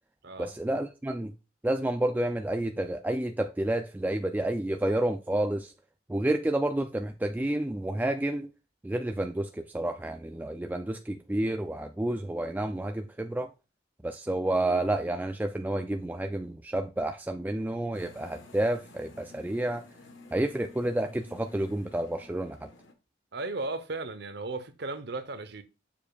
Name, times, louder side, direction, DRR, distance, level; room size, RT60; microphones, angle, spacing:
voice 1, 0.4-1.3 1.6-5.7 6.1-8.5 8.8-13.5 14.0-19.8 20.3-22.7, right 1 dB, 10° right, 0.3 m, -30 dB
sound 1, 17.9-22.9, left 2 dB, 80° left, 1.3 m, -52 dB
voice 2, 23.3-25.6, right 3 dB, 60° right, 0.9 m, -35 dB
7.1 x 6.9 x 2.4 m
head